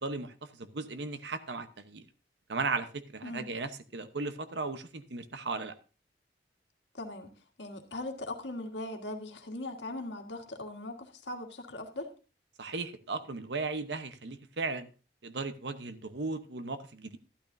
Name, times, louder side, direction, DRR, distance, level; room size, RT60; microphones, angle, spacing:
voice 1, 0.0-2.0 2.5-5.7 12.6-14.9 15.2-17.2, right 3 dB, 75° right, 11 dB, 0.9 m, -36 dB
voice 2, 6.9-7.3 7.6-12.1, left 2 dB, 90° left, 4 dB, 1.6 m, -39 dB
13.0 x 12.0 x 2.6 m, 0.34 s
head